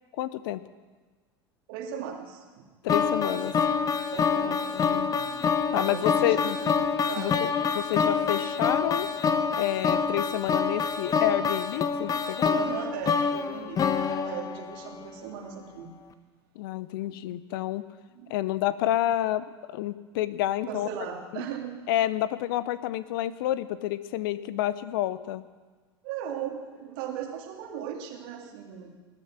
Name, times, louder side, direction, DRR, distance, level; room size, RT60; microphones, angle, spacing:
voice 1, 0.2-0.6 2.8-3.5 4.4-5.1 5.7-6.6 7.2-9.1 9.5-12.6 16.6-17.8 18.3-20.9 21.3-21.5 21.9-25.4, left 13 dB, 60° left, 15 dB, 0.7 m, -29 dB
voice 2, 1.7-2.7 3.1-3.8 4.1-6.8 7.1-7.4 12.5-15.9 17.0-17.2 18.1-18.3 20.7-21.8 26.0-28.9, right 9 dB, 55° right, 2 dB, 2.5 m, -38 dB
sound 1, 2.9-15.1, left 6 dB, 25° left, 1.0 m, -27 dB
20.0 x 10.5 x 6.0 m, 1.4 s
figure-of-eight pair, 80°, 14 cm